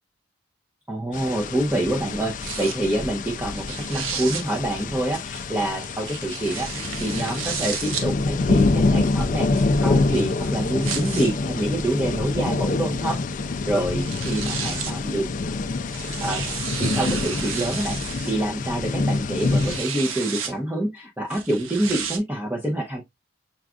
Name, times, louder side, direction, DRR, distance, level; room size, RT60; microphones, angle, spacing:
voice 1, 0.9-15.3 16.2-16.5 16.8-23.0, right 1 dB, 10° right, 0.6 m, -27 dB
sound 1, 1.1-19.8, left 3 dB, 40° left, 0.3 m, -26 dB
sound 2, 2.4-2.8 3.5-4.4 5.4-8.1 9.0-11.3 12.1-12.2 13.7-13.8 14.0-15.0 15.7-18.3 19.1-20.5 21.3-22.2, right 6 dB, 80° right, 0.8 m, -32 dB
5.8 x 2.4 x 2.4 m
head